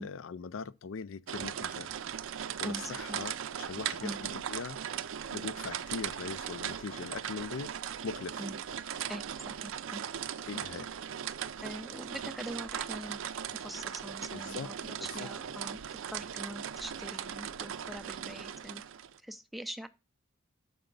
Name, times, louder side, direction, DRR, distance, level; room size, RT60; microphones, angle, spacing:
voice 1, 0.0-1.9 2.6-4.8 5.3-7.7 8.0-8.4 10.5-10.9 14.3-14.7 15.0-15.3, left 5 dB, 75° left, 0.4 m, -41 dB
sound 1, 1.3-19.2, right 9 dB, 80° right, 0.4 m, -39 dB
voice 2, 2.6-3.2 4.0-4.2 8.4-8.6 9.1-10.0 11.6-13.2 13.5-15.8 16.1-18.8 19.2-19.9, equal, ahead, 0.4 m, -43 dB
6.7 x 4.9 x 5.2 m
head